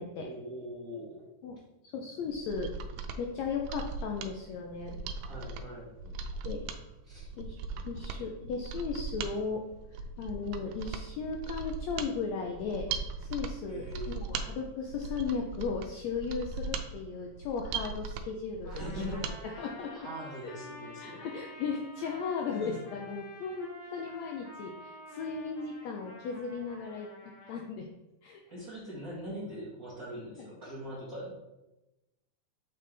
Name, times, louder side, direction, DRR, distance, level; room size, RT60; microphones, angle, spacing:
voice 1, 0.2-1.2 5.2-5.9 6.3-6.4 7.0-7.3 13.7-14.2 18.7-19.6 19.9-21.2 22.5-22.8 28.5-31.3, equal, 35° right, -7 dB, 1.7 m, -42 dB
voice 2, 1.9-2.7 3.2-5.0 6.1-6.2 6.4-6.7 7.4-7.6 7.8-9.6 10.2-12.9 13.2-20.1 20.4-20.5 21.0-27.9 28.2-28.4 30.4-30.5, left 5 dB, 80° left, 2 dB, 1.6 m, -36 dB
Mechanisms, 2.3-19.4 19.7-19.8, right 5 dB, 90° right, 2.2 m, -39 dB
Trumpet, 18.6-27.6, left 2 dB, 55° left, 1.7 m, -49 dB
6.5 x 5.4 x 3.3 m, 0.98 s
omnidirectional pair, 3.6 m